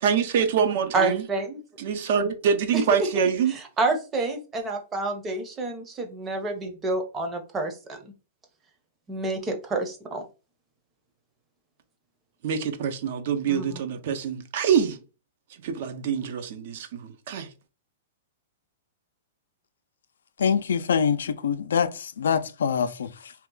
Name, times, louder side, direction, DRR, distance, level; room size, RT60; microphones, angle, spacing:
voice 1, 0.0-1.2 1.8-3.5 12.4-15.0 15.6-17.5, right 7 dB, 60° right, 0.6 m, -25 dB
voice 2, 0.9-1.6 2.7-2.8 3.5-8.1 9.1-10.2 13.5-13.8, right 3 dB, 20° right, 0.7 m, -29 dB
voice 3, 20.4-23.3, left 7 dB, 85° left, 0.4 m, -25 dB
2.8 x 2.3 x 3.7 m
hypercardioid pair, 145°, 0 cm